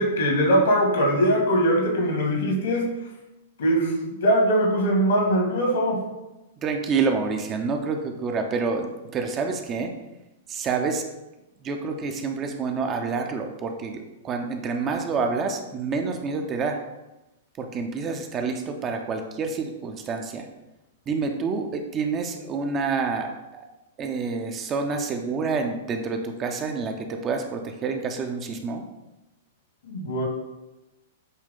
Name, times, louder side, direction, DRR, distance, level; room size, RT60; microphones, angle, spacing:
voice 1, 0.0-2.9 3.6-6.0 29.9-30.3, equal, 65° left, 0 dB, 1.9 m, -21 dB
voice 2, 6.6-9.9 10.5-11.0 11.6-16.8 17.6-20.5 21.1-23.3 24.0-28.8, right 4 dB, 25° right, 4 dB, 0.8 m, -28 dB
8.2 x 3.2 x 3.8 m, 0.99 s
figure-of-eight pair, 105°, 0 cm